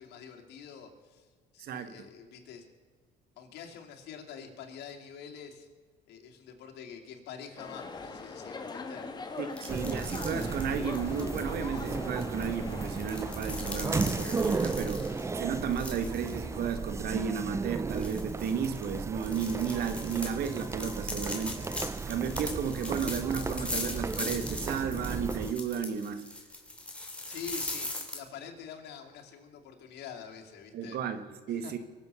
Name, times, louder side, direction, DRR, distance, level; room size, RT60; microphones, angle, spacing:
voice 1, 0.0-2.7 3.4-5.7 6.1-9.1 27.3-31.0 31.5-31.8, left 7 dB, 85° left, 3 dB, 2.6 m, -46 dB
voice 2, 1.6-1.9 9.4-21.7 22.1-26.3 30.7-31.8, right 7 dB, 65° right, 10 dB, 1.2 m, -33 dB
sound 1, 7.6-17.4, left 3 dB, 25° left, 1.6 m, -43 dB
sound 2, 9.5-11.4 12.2-16.3 16.7-16.8 17.4-17.5 17.9-28.2, left 2 dB, 5° left, 3.1 m, -40 dB
sound 3, 9.7-25.5, right 4 dB, 15° right, 0.5 m, -35 dB
23.5 x 7.8 x 6.8 m, 1.5 s
cardioid pair, 110°, 17 cm